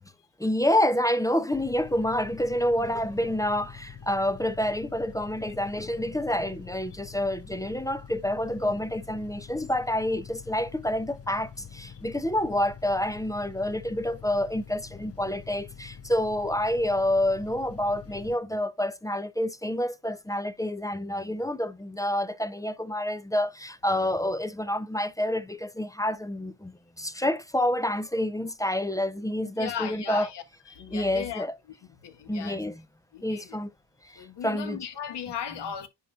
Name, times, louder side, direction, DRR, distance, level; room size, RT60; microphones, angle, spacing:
voice 1, 0.4-30.3 30.9-31.5 32.3-32.8 33.2-33.7 34.0-34.8, left 1 dB, 10° left, 0.5 m, -28 dB
sound 1, 1.5-18.4, left 7 dB, 30° left, 0.8 m, -46 dB
voice 2, 29.6-30.4 30.7-31.5 32.0-32.6 33.1-33.6 34.1-35.9, left 8 dB, 60° left, 1.4 m, -36 dB
10.0 x 4.2 x 2.3 m
cardioid pair, 75°, 47 cm